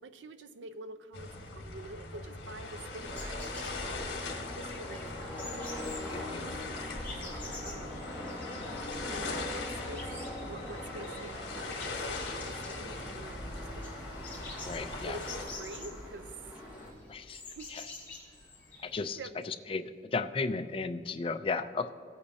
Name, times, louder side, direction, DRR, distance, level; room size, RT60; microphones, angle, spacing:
voice 1, 0.0-5.4 5.7-6.5 7.1-8.0 9.1-10.1 10.4-13.9 14.9-16.3 17.5-17.7 19.2-19.5 21.6-21.7, right 2 dB, 80° right, 11 dB, 0.6 m, -47 dB
sound 1, 1.1-15.4, left 3 dB, 65° left, 1.5 m, -41 dB
sound 2, 2.6-19.0, left 3 dB, 10° left, 2.7 m, -49 dB
sound 3, 3.0-16.9, left 1 dB, 5° right, 2.3 m, -42 dB
voice 2, 6.1-6.5 14.6-15.2 17.1-17.4 17.7-17.8 18.8-19.2 19.5-21.9, left 4 dB, 30° left, 9 dB, 0.3 m, -35 dB
17.0 x 8.4 x 2.7 m, 2.4 s
head